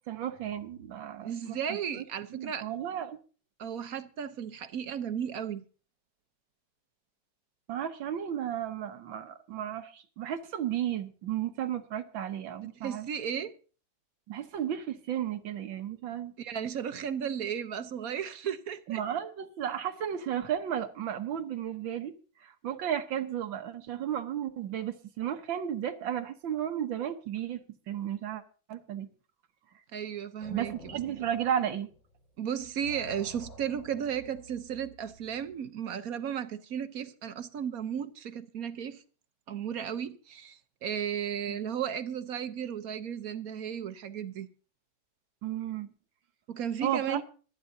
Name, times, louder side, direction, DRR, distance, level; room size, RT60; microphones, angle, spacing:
voice 1, 0.1-2.0 2.3-3.2 7.7-13.1 14.3-16.3 18.9-22.1 22.4-28.4 28.7-29.1 30.5-31.9 41.5-41.6 45.4-45.9 46.8-47.2, right 10 dB, 85° right, 1.8 m, -34 dB
voice 2, 1.2-2.7 3.6-5.6 12.8-13.5 16.4-19.0 29.9-30.9 32.4-39.0 39.5-44.5 46.5-47.2, right 8 dB, 60° right, 1.1 m, -34 dB
sound 1, 30.4-32.3 32.6-35.5, left 1 dB, 70° left, 3.5 m, -51 dB
25.5 x 9.6 x 2.7 m
omnidirectional pair, 2.0 m